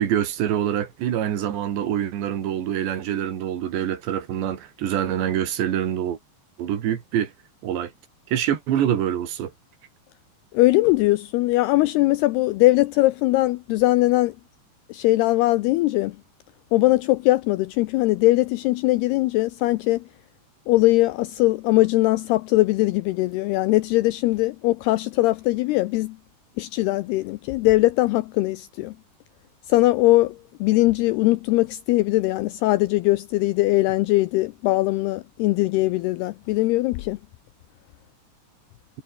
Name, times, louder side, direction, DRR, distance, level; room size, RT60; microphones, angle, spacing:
voice 1, 0.0-6.2 6.6-7.3 7.6-7.9 8.3-9.5, right 10 dB, 70° right, 4.5 m, -25 dB
voice 2, 10.5-14.4 14.9-16.2 16.7-20.0 20.7-26.2 26.6-28.9 29.7-37.2, left 18 dB, 85° left, 2.3 m, -21 dB
omnidirectional pair, 5.3 m